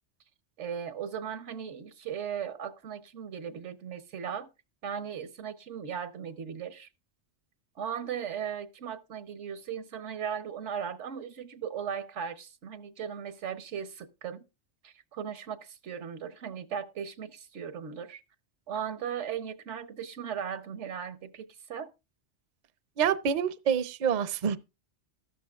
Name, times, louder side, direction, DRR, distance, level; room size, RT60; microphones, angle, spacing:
voice 1, 0.6-4.5 4.8-6.9 7.8-14.4 14.8-18.2 18.7-21.9, right 8 dB, 85° right, 1.3 m, -37 dB
voice 2, 23.0-24.6, right 8 dB, 50° right, 0.6 m, -27 dB
14.0 x 12.5 x 2.4 m
omnidirectional pair, 1.2 m